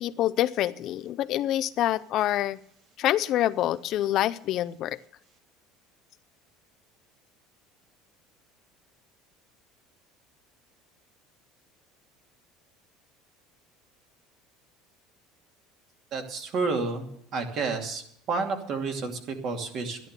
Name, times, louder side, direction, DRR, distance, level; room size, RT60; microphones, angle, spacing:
voice 1, 0.0-2.6 3.0-5.0, left 13 dB, 45° left, 13 dB, 0.5 m, -26 dB
voice 2, 16.1-17.1 17.3-20.0, right 4 dB, 45° right, 5 dB, 2.6 m, -30 dB
13.5 x 11.0 x 6.7 m, 0.69 s
cardioid pair, 160°, 0 cm